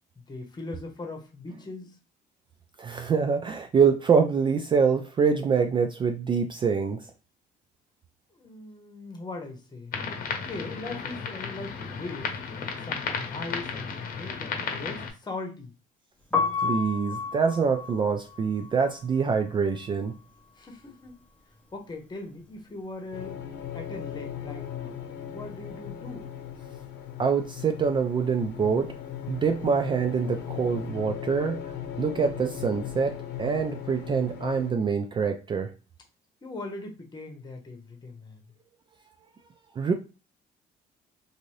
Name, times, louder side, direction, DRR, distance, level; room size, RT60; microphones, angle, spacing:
voice 1, 0.3-2.0 8.3-12.3 12.8-15.7 20.6-21.2 21.7-23.4 23.7-26.3 36.4-38.4, left 2 dB, 25° left, 2 dB, 1.0 m, -40 dB
voice 2, 2.8-7.0 16.6-20.1 27.2-28.9 29.3-31.6 32.0-35.7 39.8-39.9, right 5 dB, 30° right, 6 dB, 0.3 m, -25 dB
sound 1, 9.9-15.1, left 5 dB, 60° left, 0.8 m, -34 dB
Piano, 16.2-22.1 22.4-24.0 24.3-30.7, left 5 dB, 10° left, 0.7 m, -35 dB
sound 2, 23.1-34.7, left 9 dB, 90° left, 0.8 m, -38 dB
2.6 x 2.6 x 3.1 m, 0.31 s
cardioid pair, 110°, 17 cm